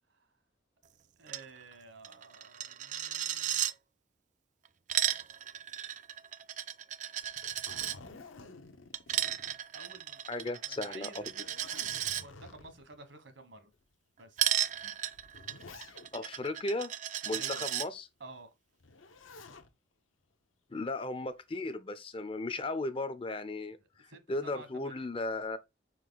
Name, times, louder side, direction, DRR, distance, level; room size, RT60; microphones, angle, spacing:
voice 1, 1.2-3.6 9.7-13.7 14.2-14.5 17.3-17.9 18.2-18.5 23.8-25.1, right 2 dB, 70° right, 1.4 m, -52 dB
Coin (dropping), 1.3-1.4 1.7-1.8 2.0-3.7 4.7-8.0 8.9-12.2 14.4-17.9, right 11 dB, 40° right, 0.4 m, -34 dB
Zipper (clothing), 7.2-10.1 10.5-10.6 11.1-13.0 13.7-13.8 14.8-16.4 18.8-19.7 21.1-21.6, left 3 dB, 85° left, 0.9 m, -52 dB
voice 2, 10.3-11.5 16.1-16.9 17.2-18.0 20.7-25.6, left 2 dB, 25° left, 0.5 m, -36 dB
5.2 x 4.7 x 4.0 m
head